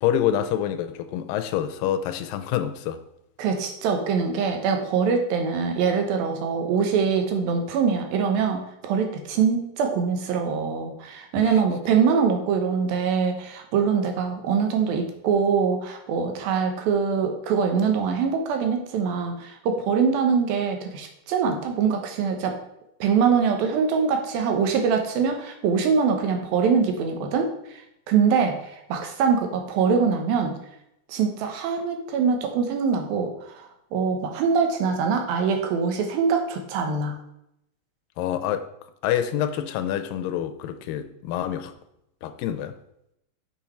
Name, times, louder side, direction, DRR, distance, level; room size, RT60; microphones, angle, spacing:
voice 1, 0.0-3.0 11.4-11.6 38.2-38.7 39.0-41.7 42.2-42.8, left 10 dB, 85° left, 9 dB, 2.3 m, -27 dB
voice 2, 3.4-22.6 23.0-27.5 28.1-28.6 28.9-30.5 31.1-33.3 33.9-37.2, right 6 dB, 85° right, 4 dB, 2.9 m, -23 dB
7.2 x 6.9 x 4.5 m, 0.80 s
omnidirectional pair, 4.1 m